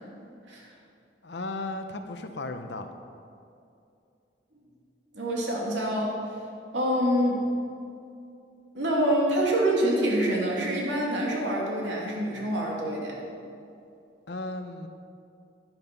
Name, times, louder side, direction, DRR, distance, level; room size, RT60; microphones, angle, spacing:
voice 1, 1.2-2.9 14.3-14.9, left 2 dB, 70° left, 7 dB, 0.9 m, -35 dB
voice 2, 5.1-6.2 6.7-7.4 8.7-13.2, right 1 dB, 90° right, -3 dB, 2.9 m, -26 dB
10.5 x 10.5 x 5.5 m, 2.6 s
head